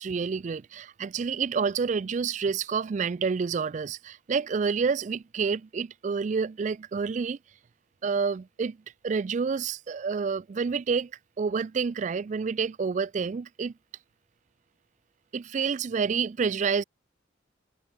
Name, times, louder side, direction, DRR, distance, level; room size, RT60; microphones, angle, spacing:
voice 1, 0.0-7.4 8.0-8.8 9.0-11.1 11.4-13.7 15.3-16.8, right 5 dB, 40° right, 0.3 m, -28 dB
head